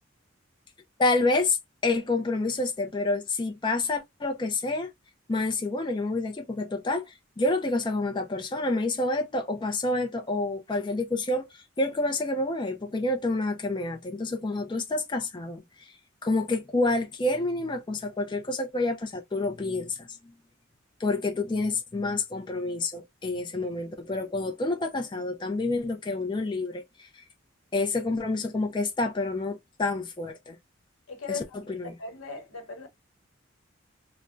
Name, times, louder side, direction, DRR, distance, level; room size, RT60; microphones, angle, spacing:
voice 1, 1.0-1.6 1.8-4.9 5.3-11.5 11.8-15.6 16.2-20.1 21.0-26.8 27.7-30.6 31.3-31.4 31.7-31.9, left 2 dB, 25° left, 0.4 m, -28 dB
voice 2, 31.1-31.6 32.0-32.9, left 5 dB, 85° left, 0.9 m, -37 dB
3.5 x 2.1 x 2.5 m
head